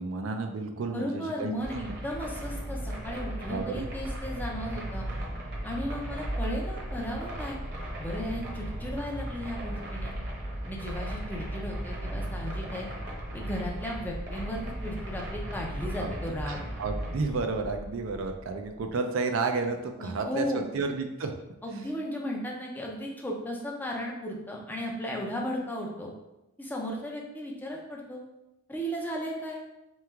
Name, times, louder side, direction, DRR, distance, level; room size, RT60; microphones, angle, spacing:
voice 1, 0.0-1.9 3.5-3.9 16.0-16.1 16.5-21.3 21.7-21.8, right 4 dB, 65° right, 5 dB, 0.4 m, -32 dB
voice 2, 0.9-5.1 5.6-7.6 8.0-10.1 10.7-12.9 13.3-16.6 20.0-20.7 21.6-26.1 26.6-28.2 28.7-29.6, equal, 10° left, -1 dB, 0.5 m, -35 dB
sound 1, 1.6-18.9, right 1 dB, 50° right, 0.9 m, -36 dB
3.4 x 3.1 x 3.4 m, 0.94 s
head